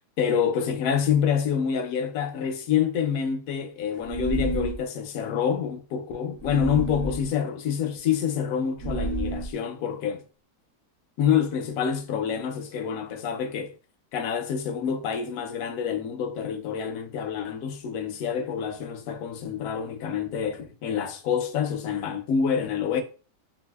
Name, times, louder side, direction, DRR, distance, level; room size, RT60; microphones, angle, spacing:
voice 1, 0.2-10.2 11.2-13.7 14.1-23.0, left 7 dB, 70° left, 0.8 m, -27 dB
sound 1, 4.1-4.8 6.4-7.3 8.8-9.5, right 1 dB, 65° right, 0.8 m, -30 dB
4.1 x 2.4 x 2.3 m
omnidirectional pair, 1.8 m